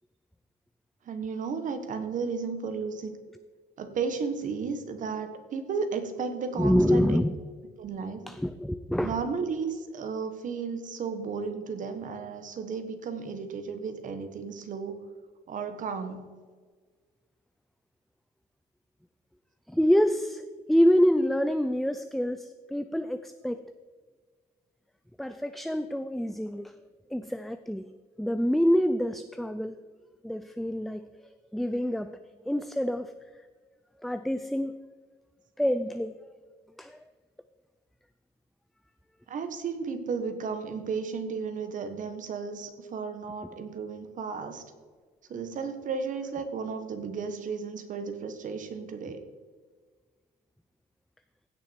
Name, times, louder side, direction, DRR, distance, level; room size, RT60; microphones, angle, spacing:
voice 1, 1.0-3.2 3.8-7.2 7.8-8.2 9.0-15.0 15.5-16.2 39.3-44.6 45.3-49.2, right 5 dB, 50° right, 8 dB, 1.5 m, -34 dB
voice 2, 6.6-7.4 8.3-9.1 19.7-20.4 20.7-23.6 25.2-26.7 27.1-27.9 28.2-29.7 30.2-31.1 31.5-32.2 32.5-33.1 34.0-34.8 35.6-36.2 36.8-37.0, equal, ahead, 10 dB, 0.4 m, -26 dB
16.0 x 6.1 x 4.6 m, 1.5 s
cardioid pair, 110°, 17 cm